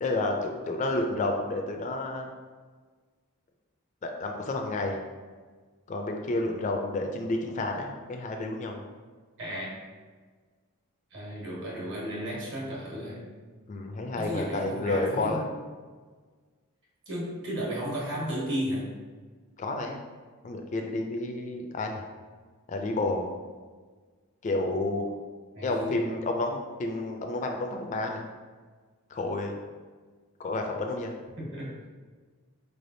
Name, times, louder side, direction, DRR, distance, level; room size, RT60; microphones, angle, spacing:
voice 1, 0.0-2.3 4.0-5.0 5.9-8.8 13.7-15.4 19.6-20.0 20.4-22.1 22.7-23.3 24.4-25.1 25.6-28.2 29.1-29.5 30.4-31.1, left 2 dB, 35° left, 2 dB, 0.3 m, -30 dB
voice 2, 9.4-9.8 11.1-13.3 14.2-15.5 17.1-18.9 25.5-26.1 31.4-31.7, equal, 60° right, -5 dB, 1.3 m, -34 dB
4.6 x 3.3 x 2.6 m, 1.5 s
head